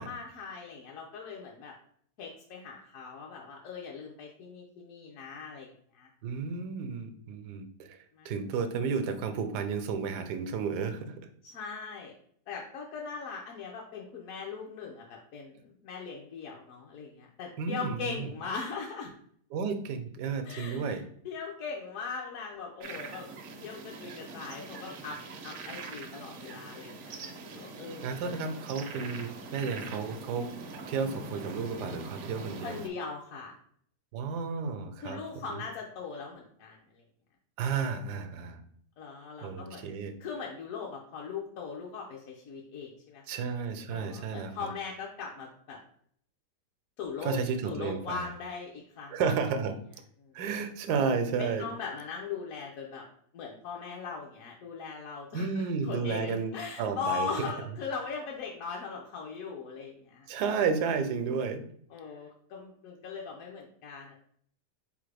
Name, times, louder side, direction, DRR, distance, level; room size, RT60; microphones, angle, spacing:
voice 1, 0.0-1.7 2.2-6.1 8.1-8.3 11.4-12.1 12.5-19.1 20.4-21.0 21.2-23.3 23.6-28.3 32.6-33.6 35.0-37.0 39.0-39.8 40.2-43.2 43.9-45.8 47.0-47.4 47.7-49.2 50.2-50.3 51.4-53.1 53.3-60.3 61.9-64.1, left 5 dB, 65° left, -2 dB, 0.9 m, -40 dB
voice 2, 6.2-8.0 8.2-11.2 17.6-18.3 19.5-21.0 28.0-30.5 30.9-32.8 34.1-35.6 37.6-38.6 39.4-40.1 43.3-44.7 47.2-48.3 49.1-49.8 50.3-51.7 55.3-57.5 60.3-61.7, right 5 dB, 80° right, 9 dB, 1.1 m, -32 dB
sound 1, 22.8-32.9, right 3 dB, 65° right, 0.7 m, -43 dB
4.1 x 3.6 x 3.2 m, 0.63 s
omnidirectional pair, 1.7 m